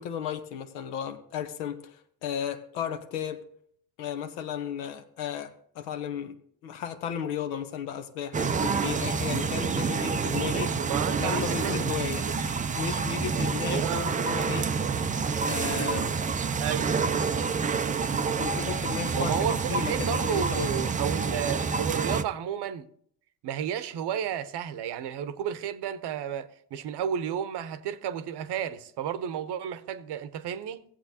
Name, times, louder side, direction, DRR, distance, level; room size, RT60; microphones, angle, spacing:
voice 1, 0.0-1.8 2.2-3.4 4.0-6.3 6.6-10.7 11.2-12.3 12.8-14.7 15.5-16.2 18.4-19.3 19.7-20.7, left 8 dB, 80° left, 1.0 m, -34 dB
sound 1, 8.3-22.2, right 5 dB, 20° right, 0.4 m, -28 dB
voice 2, 10.5-11.9 12.3-12.4 13.7-14.1 16.6-16.9 19.2-22.9 23.4-30.8, right 9 dB, 55° right, 0.8 m, -32 dB
16.0 x 7.7 x 2.7 m
supercardioid pair, 75°, 49 cm